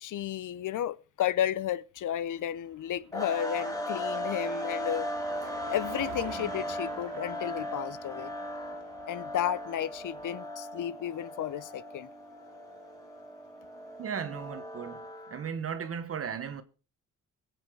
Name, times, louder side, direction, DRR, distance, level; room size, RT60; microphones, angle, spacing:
voice 1, 0.0-5.1 5.7-8.3 9.1-12.1, left 11 dB, 65° left, 0.7 m, -33 dB
Car passing by, 2.0-10.2, right 10 dB, 85° right, 1.8 m, -47 dB
sound 1, 3.1-15.5, left 1 dB, 10° left, 2.7 m, -37 dB
voice 2, 14.0-16.6, right 7 dB, 45° right, 1.0 m, -36 dB
22.0 x 8.1 x 4.5 m
cardioid pair, 125°, 33 cm